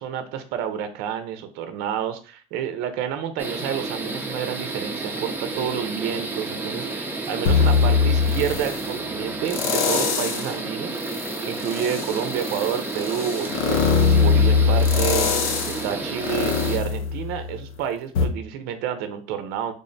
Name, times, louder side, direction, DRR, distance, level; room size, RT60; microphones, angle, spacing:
voice 1, 0.0-19.7, right 9 dB, 65° right, 8 dB, 0.5 m, -29 dB
sound 1, 3.4-16.8, right 3 dB, 10° right, 0.5 m, -31 dB
sound 2, 7.5-8.9 9.5-10.5 11.0-17.7 18.2-18.3, left 5 dB, 85° left, 0.7 m, -21 dB
3.4 x 2.1 x 3.9 m, 0.37 s
supercardioid pair, 110°, 17 cm